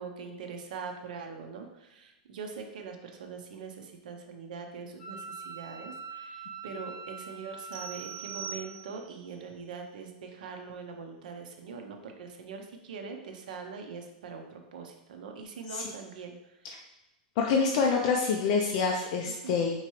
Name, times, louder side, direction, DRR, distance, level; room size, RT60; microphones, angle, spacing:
voice 1, 0.0-16.4 19.2-19.5, right 5 dB, 75° right, 4 dB, 0.7 m, -42 dB
Wind instrument woodwind instrument, 5.0-8.7, right 4 dB, 15° left, 1.1 m, -43 dB
sound 1, 7.7-9.2, right 8 dB, 25° right, 0.4 m, -42 dB
voice 2, 17.4-19.7, left 5 dB, 45° left, 0 dB, 0.4 m, -26 dB
4.6 x 2.9 x 3.0 m, 1.0 s
supercardioid pair, 155°, 5 cm